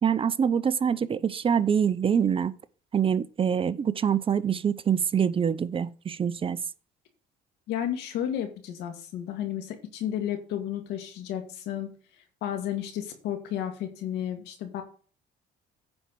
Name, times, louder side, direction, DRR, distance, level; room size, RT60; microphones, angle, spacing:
voice 1, 0.0-2.5 2.9-6.6, right 7 dB, 30° right, 0.6 m, -25 dB
voice 2, 7.7-11.9 12.4-14.8, left 10 dB, 85° left, 2.0 m, -32 dB
9.8 x 4.5 x 6.7 m
cardioid pair, 110°, 17 cm